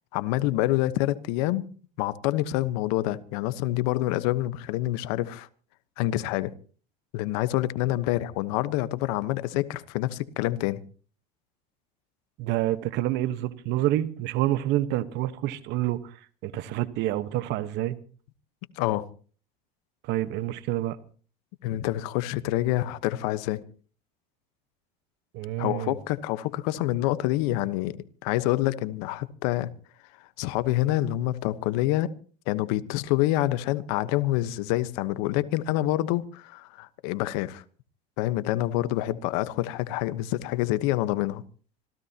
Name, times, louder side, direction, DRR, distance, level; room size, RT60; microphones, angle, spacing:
voice 1, 0.1-1.7 2.0-5.5 6.0-6.5 7.1-10.8 18.8-19.1 21.6-23.6 25.6-29.7 30.2-32.1 32.5-37.6 38.2-41.4, left 15 dB, 75° left, 1.2 m, -27 dB
voice 2, 12.4-18.0 20.0-21.0 25.3-26.0, right 14 dB, 60° right, 1.3 m, -28 dB
26.0 x 16.5 x 2.9 m
supercardioid pair, 105°, 20 cm